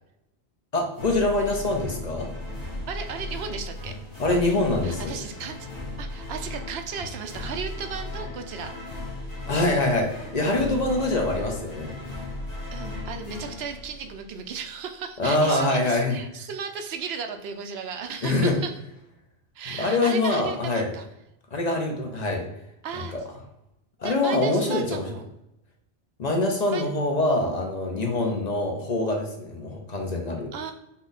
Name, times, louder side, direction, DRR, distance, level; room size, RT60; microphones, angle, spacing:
voice 1, 0.7-2.3 4.2-5.1 9.5-11.9 15.2-16.2 18.2-18.5 19.8-20.9 21.5-22.4 23.1-23.2 24.0-25.0 26.2-30.5, left 2 dB, 45° left, 1 dB, 0.8 m, -24 dB
sound 1, 0.9-14.6, left 2 dB, 20° left, 1.1 m, -36 dB
voice 2, 2.9-4.0 4.3-4.5 4.8-5.7 6.0-9.0 12.7-18.7 19.5-21.1 22.8-23.2 24.0-25.2 26.7-26.9 30.5-30.7, right 6 dB, 80° right, 6 dB, 0.8 m, -35 dB
5.6 x 2.3 x 4.0 m, 0.84 s
omnidirectional pair, 1.1 m